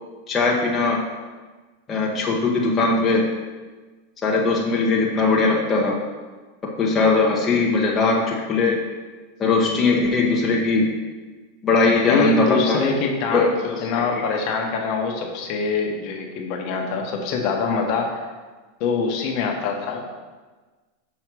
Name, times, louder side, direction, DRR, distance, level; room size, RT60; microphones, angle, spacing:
voice 1, 0.3-1.1 1.9-3.3 4.2-6.0 6.8-8.8 9.4-10.9 11.6-12.8 13.3-14.0 14.5-14.6, left 3 dB, 20° left, -3 dB, 0.9 m, -20 dB
voice 2, 12.0-18.3 18.8-20.0, left 5 dB, 45° left, 2 dB, 1.1 m, -24 dB
6.1 x 4.2 x 6.1 m, 1.3 s
supercardioid pair, 150°, 0 cm